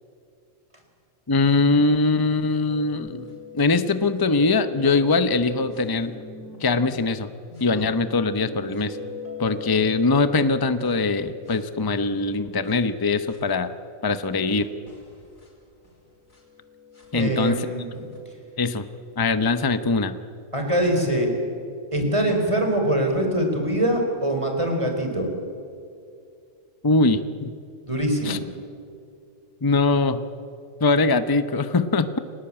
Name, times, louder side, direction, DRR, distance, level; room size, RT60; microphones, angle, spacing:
voice 1, 1.3-3.3 3.5-6.2 6.6-7.3 7.6-9.0 9.4-13.7 14.0-14.7 17.1-17.7 18.6-18.8 19.2-20.2 26.8-27.5 28.2-28.4 29.6-30.2 30.8-32.2, left 3 dB, 20° left, 10 dB, 0.8 m, -22 dB
sound 1, 2.7-7.0 7.5-13.4 14.5-14.6 14.9-18.2, left 5 dB, 85° left, 5.6 m, -41 dB
voice 2, 17.1-17.8 20.5-21.3 21.9-25.3 27.9-28.4, right 1 dB, 20° right, 3 dB, 4.6 m, -23 dB
29.5 x 19.0 x 8.8 m, 2.5 s
omnidirectional pair, 1.4 m